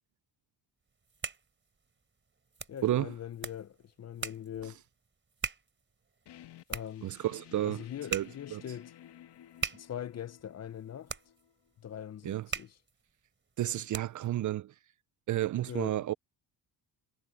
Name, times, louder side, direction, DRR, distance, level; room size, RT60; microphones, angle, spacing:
sound 1, 0.9-14.4, right 5 dB, 25° right, 4.2 m, -43 dB
voice 1, 2.7-4.8 6.7-7.1 7.6-8.9 9.8-11.2 11.8-12.8 15.7-16.0, left 10 dB, 35° left, 0.7 m, -42 dB
sound 2, 6.3-11.7, left 11 dB, 65° left, 1.9 m, -54 dB
voice 2, 7.0-7.8 8.1-8.6 12.2-12.5 13.6-14.7 15.3-16.1, right 13 dB, 45° right, 0.4 m, -31 dB
cardioid pair, 130°, 43 cm